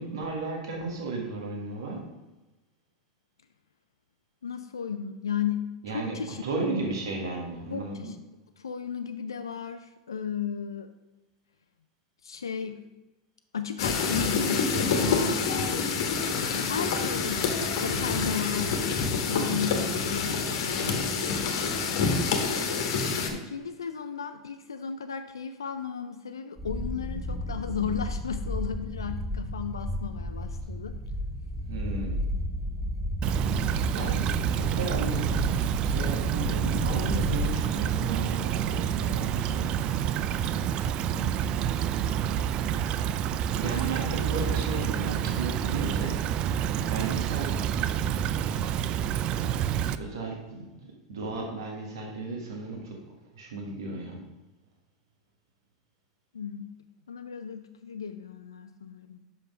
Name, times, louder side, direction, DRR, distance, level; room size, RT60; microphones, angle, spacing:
voice 1, 0.0-2.0 5.8-8.1 19.4-19.8 31.7-32.2 33.6-39.7 41.1-41.7 43.6-46.3 46.7-47.6 49.9-53.0 53.3-54.2, right 3 dB, 80° right, 0 dB, 1.5 m, -35 dB
voice 2, 4.4-6.4 7.7-8.2 8.6-10.9 12.2-12.8 13.5-15.5 16.5-18.8 19.1-20.9 23.3-31.0 56.3-56.7 57.1-59.2, left 7 dB, 90° left, 8 dB, 0.3 m, -34 dB
sound 1, 13.8-23.3, left 5 dB, 70° left, 1.2 m, -27 dB
sound 2, 26.6-37.4, left 1 dB, ahead, 0.8 m, -33 dB
Stream / Trickle dribble, 33.2-50.0, right 9 dB, 45° right, 0.3 m, -28 dB
5.7 x 5.3 x 5.4 m, 1.1 s
hypercardioid pair, 90°, 2 cm